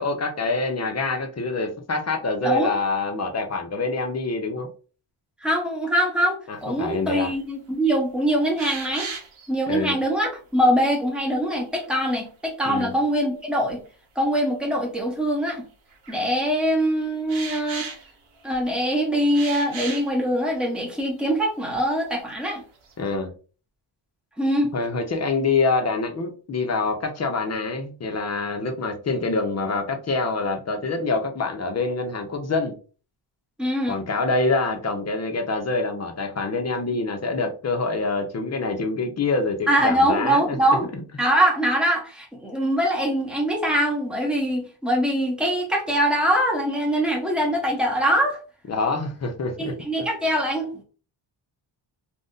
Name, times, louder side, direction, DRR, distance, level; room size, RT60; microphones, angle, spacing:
voice 1, 0.0-4.7 6.5-7.3 9.7-10.0 12.7-12.9 23.0-23.3 24.7-32.7 33.9-40.6 40.9-41.0 48.7-49.7, left 3 dB, 35° left, 0.5 m, -26 dB
voice 2, 5.4-9.1 9.5-13.8 14.2-15.6 16.1-17.9 18.4-22.6 24.4-24.7 33.6-34.0 39.7-40.9 41.2-48.4 49.6-50.8, equal, ahead, 0.8 m, -23 dB
sound 1, 7.2-7.3 7.8-7.9 8.6-9.5 11.7-12.4 13.7-13.8 14.7-14.8 15.9-16.3 17.3-18.7 19.3-20.2 20.8-20.9 21.2-21.3 21.7-22.2 22.5-23.2, right 5 dB, 70° right, 0.8 m, -36 dB
2.5 x 2.1 x 3.7 m
wide cardioid pair, 135°, 50 cm